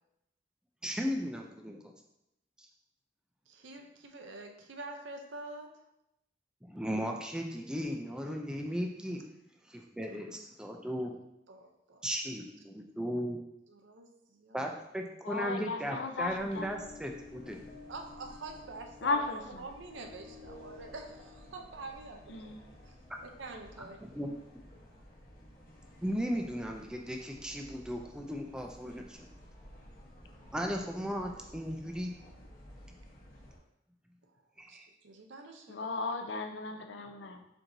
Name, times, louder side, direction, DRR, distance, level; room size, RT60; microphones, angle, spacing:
voice 1, 0.8-1.9 6.6-9.3 9.7-11.2 12.0-13.4 14.5-17.6 24.0-24.3 26.0-29.3 30.5-32.1 34.6-34.9, equal, 5° right, 2 dB, 0.4 m, -36 dB
voice 2, 3.5-5.7 11.5-12.0 13.7-14.7 17.9-19.1 19.6-22.5 22.9-23.0 23.2-24.1 34.3-34.4 34.7-35.9, right 3 dB, 75° right, 4 dB, 0.6 m, -46 dB
voice 3, 15.2-16.9 19.0-19.7 22.3-22.7 35.7-37.5, left 3 dB, 65° left, 7 dB, 0.4 m, -35 dB
sound 1, 16.2-33.6, left 1 dB, 45° left, 1.0 m, -53 dB
4.5 x 3.8 x 2.6 m, 0.84 s
head